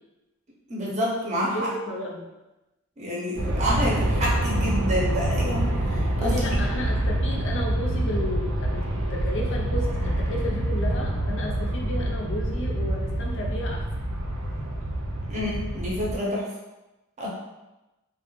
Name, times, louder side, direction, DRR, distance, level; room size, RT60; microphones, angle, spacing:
voice 1, 0.7-1.7 3.0-6.6 15.3-16.5 17.2-17.3, equal, 35° right, -4 dB, 0.5 m, -28 dB
voice 2, 1.5-2.3 6.2-13.8, left 1 dB, 65° left, -2 dB, 0.5 m, -33 dB
Aircraft, 3.4-16.2, right 1 dB, 80° right, 0.5 m, -26 dB
2.3 x 2.0 x 3.0 m, 1.0 s
head